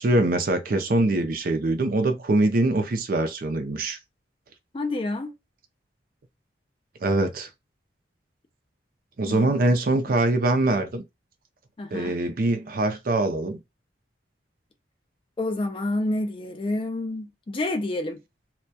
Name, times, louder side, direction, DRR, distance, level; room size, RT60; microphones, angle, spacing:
voice 1, 0.0-4.0 7.0-7.5 9.2-11.0 11.9-13.6, right 2 dB, 50° right, 0.4 m, -23 dB
voice 2, 4.7-5.3 9.3-9.7 11.8-12.2 15.4-18.2, left 2 dB, 30° left, 0.3 m, -29 dB
2.2 x 2.2 x 2.6 m
head